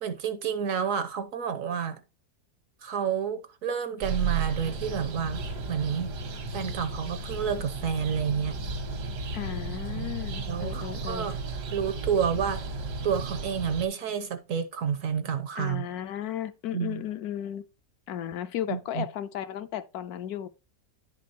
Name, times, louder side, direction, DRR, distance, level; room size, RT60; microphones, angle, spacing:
voice 1, 0.0-2.0 2.8-6.1 6.5-8.6 9.9-10.2 10.5-11.4 11.7-12.6 13.0-15.9 16.7-17.0 18.7-19.1, right 7 dB, 65° right, 0.9 m, -30 dB
sound 1, 4.0-13.9, right 4 dB, 85° right, 1.7 m, -34 dB
voice 2, 9.3-11.3 15.6-17.6 18.1-20.5, left 10 dB, 75° left, 1.0 m, -35 dB
10.5 x 5.2 x 2.8 m
omnidirectional pair, 1.8 m